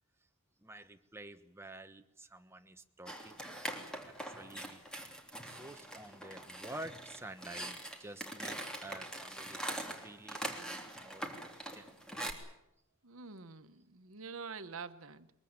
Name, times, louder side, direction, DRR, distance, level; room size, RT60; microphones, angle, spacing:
voice 1, 0.6-3.6 3.8-4.8 5.4-8.6 8.8-11.3 11.7-12.3, right 2 dB, 10° right, 1.3 m, -50 dB
sound 1, 3.1-12.3, right 1 dB, 5° left, 3.2 m, -43 dB
voice 2, 13.0-15.3, right 5 dB, 75° right, 1.2 m, -46 dB
22.5 x 22.5 x 8.9 m
head